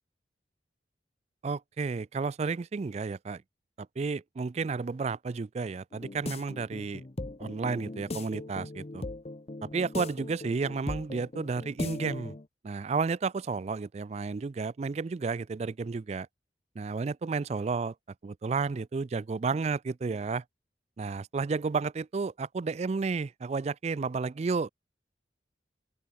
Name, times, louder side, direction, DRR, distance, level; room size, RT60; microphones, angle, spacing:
voice 1, 1.4-3.4 3.8-7.0 7.4-9.0 9.6-12.3 12.6-16.3 16.8-17.9 18.2-20.4 21.0-24.7, right 4 dB, 35° right, 0.3 m, -32 dB
sound 1, 5.9-12.5, left 2 dB, 35° left, 0.8 m, -39 dB
open air
head